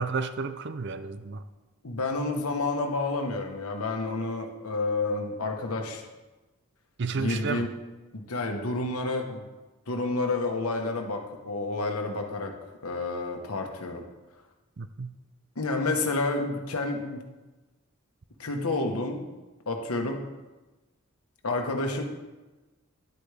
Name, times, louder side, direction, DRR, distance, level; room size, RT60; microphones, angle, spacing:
voice 1, 0.0-1.4 7.0-7.7 14.8-15.1, right 4 dB, 50° right, 11 dB, 0.5 m, -31 dB
voice 2, 1.8-6.0 7.1-7.7 8.1-9.5 9.9-12.5 12.8-14.0 15.5-17.2 18.4-19.3 19.7-20.2 21.4-22.0, left 2 dB, 90° left, 4 dB, 1.2 m, -29 dB
11.0 x 8.2 x 3.4 m, 1.2 s
head